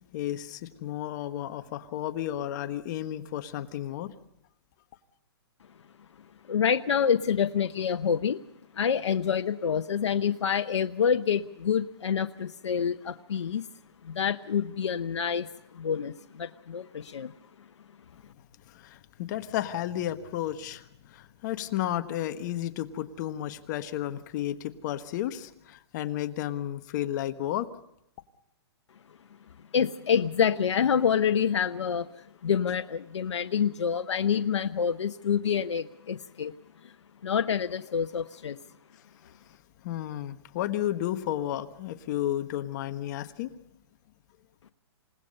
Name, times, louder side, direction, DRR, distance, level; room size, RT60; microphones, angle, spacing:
voice 1, 0.1-4.1 18.7-27.7 39.8-43.6, left 12 dB, 40° left, 10 dB, 1.4 m, -32 dB
voice 2, 6.5-8.4 8.7-13.7 14.0-17.3 29.7-36.5 37.2-38.6, left 7 dB, 85° left, 9 dB, 0.9 m, -27 dB
28.5 x 18.0 x 5.4 m, 0.78 s
hypercardioid pair, 150°, 14 cm